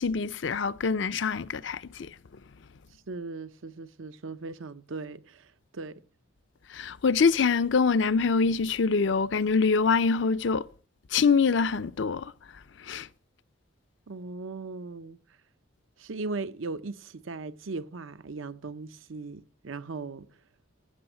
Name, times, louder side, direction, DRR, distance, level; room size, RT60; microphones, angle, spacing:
voice 1, 0.0-2.2 6.7-10.7 11.1-12.3 12.8-13.1, left 5 dB, 60° left, 0.5 m, -25 dB
voice 2, 3.1-6.0 14.1-15.2 16.0-20.3, right 3 dB, 75° right, 0.7 m, -38 dB
15.0 x 6.3 x 7.8 m
head